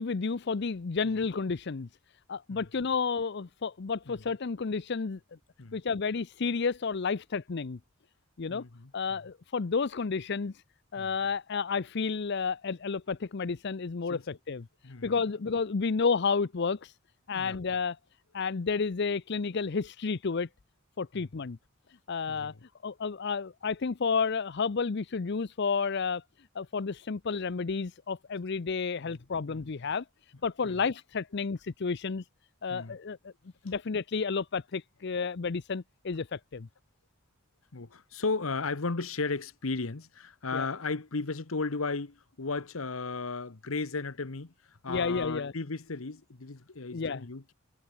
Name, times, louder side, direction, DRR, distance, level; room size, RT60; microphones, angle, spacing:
voice 1, 0.0-1.9 2.3-5.2 5.7-7.8 8.4-8.6 8.9-10.5 10.9-14.7 15.0-16.9 17.3-18.0 18.3-20.5 21.0-21.6 22.1-22.5 22.8-26.2 26.5-30.0 30.4-32.2 32.6-33.3 33.6-36.7 40.5-40.7 44.9-45.5 46.9-47.2, left 5 dB, 55° left, 0.6 m, -31 dB
voice 2, 8.5-8.9 11.0-11.1 14.1-14.2 14.8-15.1 17.3-17.6 21.1-21.2 22.3-22.5 29.0-29.2 29.4-29.6 32.7-33.0 37.7-47.5, left 3 dB, 80° left, 1.2 m, -35 dB
head